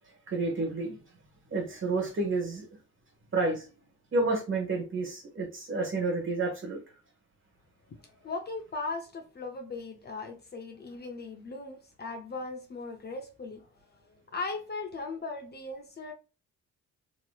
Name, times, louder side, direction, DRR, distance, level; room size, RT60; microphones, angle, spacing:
voice 1, 0.3-0.9 1.5-2.7 3.3-3.7 4.1-6.8, right 3 dB, 40° right, 1.5 m, -30 dB
voice 2, 7.9-14.0 14.3-16.1, left 3 dB, 35° left, 0.6 m, -38 dB
3.0 x 2.9 x 2.3 m
cardioid pair, 90°, 30 cm